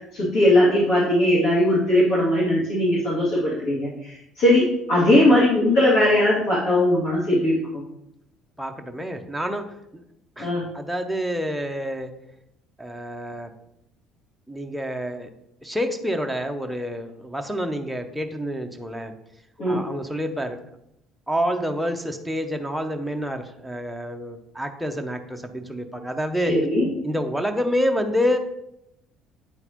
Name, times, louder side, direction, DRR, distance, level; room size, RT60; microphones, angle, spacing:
voice 1, 0.1-7.6 10.4-10.7 19.6-19.9 26.4-26.9, left 1 dB, 75° left, -9 dB, 2.4 m, -19 dB
voice 2, 8.6-9.7 9.9-10.0 10.4-12.1 12.8-13.5 14.5-15.3 15.6-19.1 19.7-20.6 21.3-26.6 27.0-28.4, equal, ahead, 4 dB, 0.6 m, -28 dB
8.8 x 3.9 x 3.0 m, 0.81 s
cardioid pair, 105°, 0 cm